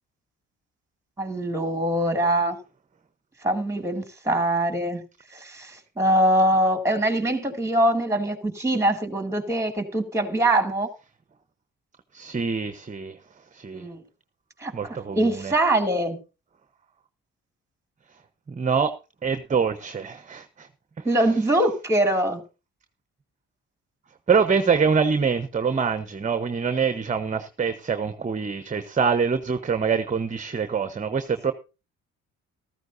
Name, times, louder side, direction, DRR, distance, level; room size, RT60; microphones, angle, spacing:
voice 1, 1.2-2.6 3.4-5.0 5.3-10.9 13.7-14.0 14.6-16.2 21.0-22.4, right 1 dB, 10° right, 7 dB, 2.4 m, -23 dB
voice 2, 12.1-13.2 13.5-13.8 14.7-15.5 18.5-18.9 19.2-20.7 21.0-21.1 24.3-31.5, right 6 dB, 25° right, 10 dB, 1.0 m, -25 dB
14.5 x 14.0 x 2.7 m, 0.30 s
cardioid pair, 90°, 30 cm